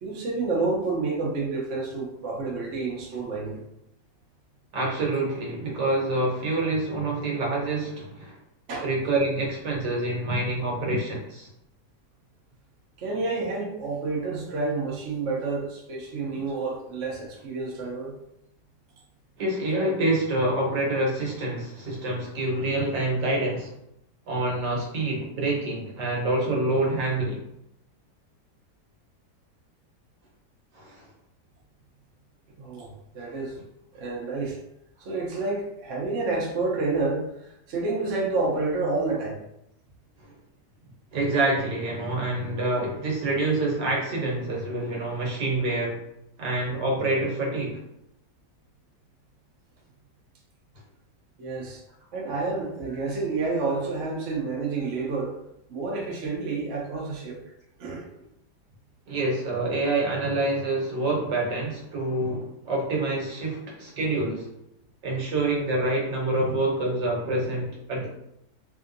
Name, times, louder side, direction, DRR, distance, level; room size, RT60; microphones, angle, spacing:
voice 1, 0.0-3.6 8.7-8.9 13.0-18.1 32.6-33.6 33.9-34.6 35.0-39.4 51.4-51.8 52.1-55.3 55.7-57.4 57.8-58.1, right 3 dB, 55° right, -2 dB, 0.9 m, -29 dB
voice 2, 4.7-8.4 8.8-11.5 19.4-23.7 24.3-27.4 30.7-31.0 40.2-40.3 41.1-46.0 46.4-47.8 59.1-64.5 65.0-68.1, right 2 dB, 75° right, -2 dB, 1.6 m, -27 dB
3.5 x 2.8 x 2.6 m, 0.78 s
omnidirectional pair, 1.9 m